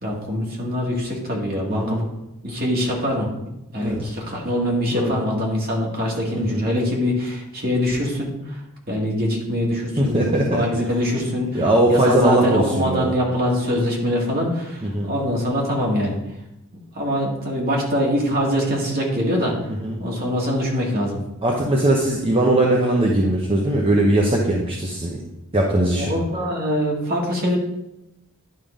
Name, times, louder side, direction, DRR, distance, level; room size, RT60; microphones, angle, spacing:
voice 1, 0.0-2.0 2.4-3.3 3.7-8.6 8.9-11.6 11.9-16.2 16.9-19.5 20.0-21.2 25.9-27.6, equal, 45° right, -2 dB, 2.0 m, -23 dB
voice 2, 1.7-2.0 3.8-4.0 4.9-5.2 6.3-6.6 10.0-10.6 11.5-13.1 14.8-15.1 19.8-20.0 21.4-25.2 25.5-26.1, right 1 dB, 25° right, -2 dB, 0.9 m, -20 dB
11.0 x 3.8 x 5.0 m, 0.88 s
head